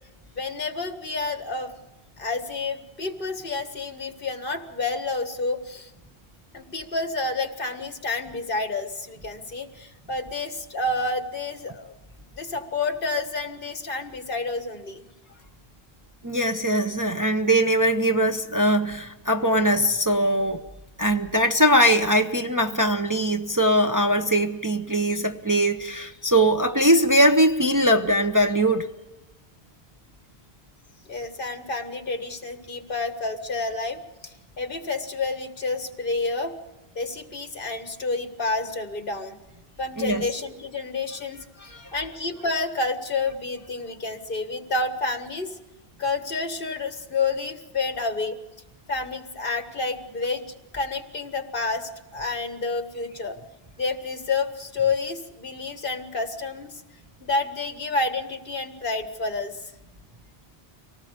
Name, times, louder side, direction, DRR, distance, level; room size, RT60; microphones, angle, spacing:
voice 1, 0.4-1.7 2.2-5.9 6.5-11.9 12.4-15.0 31.1-36.5 37.0-39.4 39.8-41.4 41.9-45.6 46.0-48.4 48.9-53.4 53.8-56.7 57.2-59.6, left 3 dB, 60° left, 1.8 m, -29 dB
voice 2, 16.2-20.6 21.0-28.9 40.0-40.3 41.7-41.9, equal, 20° right, 0.8 m, -21 dB
25.0 x 18.5 x 6.6 m
omnidirectional pair, 1.0 m